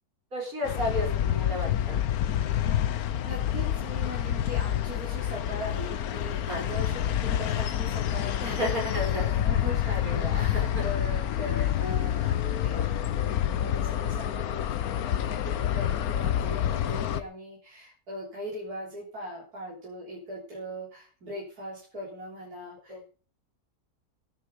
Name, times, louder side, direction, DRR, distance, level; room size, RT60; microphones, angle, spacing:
voice 1, 0.3-2.0 6.5-6.6 8.4-9.4 9.9-10.8 22.9-23.0, left 1 dB, 65° right, -1 dB, 5.5 m, -33 dB
sound 1, 0.6-17.2, left 10 dB, 75° left, 1.3 m, -28 dB
voice 2, 3.2-23.0, equal, 85° right, -5 dB, 3.9 m, -40 dB
13.5 x 10.5 x 5.2 m, 0.41 s
omnidirectional pair, 1.6 m